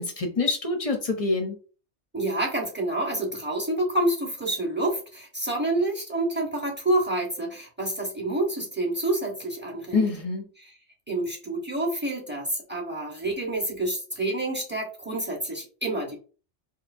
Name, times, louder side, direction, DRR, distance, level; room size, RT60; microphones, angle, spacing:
voice 1, 0.0-1.6 9.9-10.4, left 3 dB, 35° left, 4 dB, 0.7 m, -26 dB
voice 2, 2.1-10.0 10.6-10.7 11.1-16.2, right 1 dB, 10° right, 0 dB, 1.2 m, -28 dB
4.8 x 2.9 x 2.7 m, 0.37 s
omnidirectional pair, 1.2 m